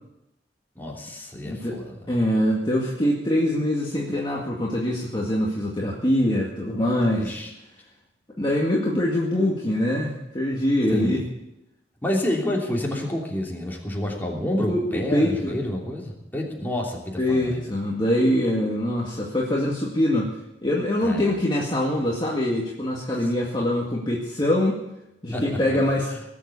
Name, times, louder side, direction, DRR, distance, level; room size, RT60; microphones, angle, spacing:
voice 1, 0.7-1.9 7.2-7.5 10.9-11.2 12.0-17.6 21.0-21.3 25.3-25.4, left 1 dB, 10° left, -2 dB, 3.1 m, -28 dB
voice 2, 1.4-1.8 2.1-7.3 8.4-11.2 14.7-15.5 17.2-20.3 20.6-24.8 25.2-26.1, left 1 dB, 25° left, -4 dB, 2.0 m, -23 dB
19.0 x 7.7 x 8.4 m, 0.92 s
head